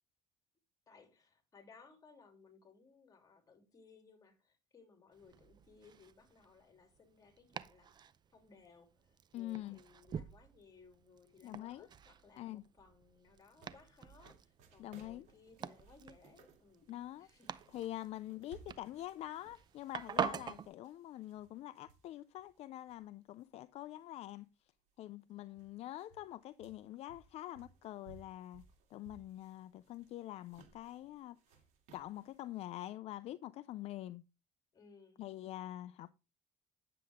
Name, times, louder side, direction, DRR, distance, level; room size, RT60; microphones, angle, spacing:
voice 1, 0.9-8.0 8.3-16.9 17.2-17.7 34.7-35.2, left 4 dB, 30° left, 3.1 m, -62 dB
Domestic sounds home sounds, 5.1-20.7, right 8 dB, 40° right, 0.6 m, -46 dB
voice 2, 9.3-9.8 11.4-11.9 12.4-12.6 14.8-15.3 16.9-17.3 17.7-24.5 25.0-28.6 28.9-31.4 31.9-34.2 35.2-36.1, left 14 dB, 65° left, 0.5 m, -45 dB
sound 1, 13.4-23.4 23.9-24.0 24.9-25.0 25.2-32.6, right 6 dB, 75° right, 2.7 m, -64 dB
9.7 x 7.7 x 3.6 m
cardioid pair, 115°, 12 cm